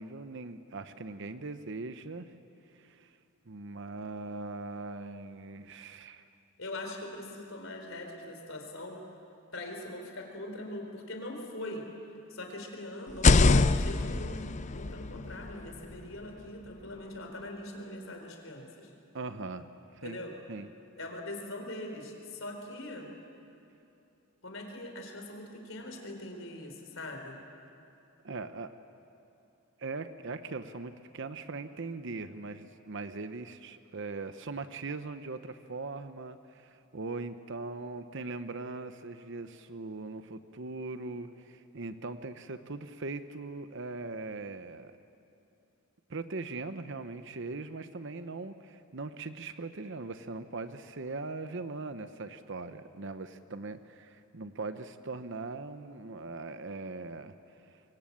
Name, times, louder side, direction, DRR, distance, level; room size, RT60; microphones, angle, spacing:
voice 1, 0.0-2.3 2.7-3.2 3.5-6.2 19.1-19.7 19.9-20.2 20.5-20.7 28.2-28.7 29.8-45.0 46.1-57.8, right 3 dB, 60° right, 10 dB, 0.8 m, -40 dB
voice 2, 6.6-9.0 9.5-11.8 12.3-18.9 20.0-20.3 21.0-23.1 24.4-27.4, left 1 dB, 65° left, 3 dB, 4.3 m, -42 dB
sound 1, 13.1-16.9, left 3 dB, 35° left, 0.5 m, -26 dB
25.0 x 23.5 x 8.7 m, 2.7 s
head